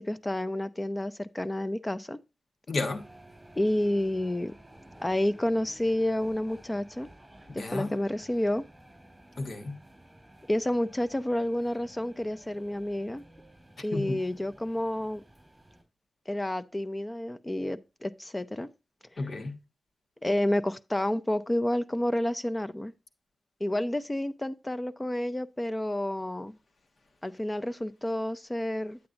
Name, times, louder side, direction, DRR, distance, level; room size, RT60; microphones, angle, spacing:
voice 1, 0.0-2.2 3.6-4.5 5.0-7.1 7.5-8.6 10.5-13.2 13.8-15.2 16.3-18.7 20.2-22.9 23.6-26.5 27.2-29.0, left 1 dB, 15° left, 0.5 m, -30 dB
voice 2, 2.7-3.1 7.5-8.0 9.4-9.8 13.9-14.2 19.2-19.6, left 3 dB, 55° left, 1.3 m, -32 dB
sound 1, 2.9-15.8, right 1 dB, 5° right, 3.8 m, -54 dB
8.8 x 8.3 x 2.5 m
wide cardioid pair, 110°, 0 cm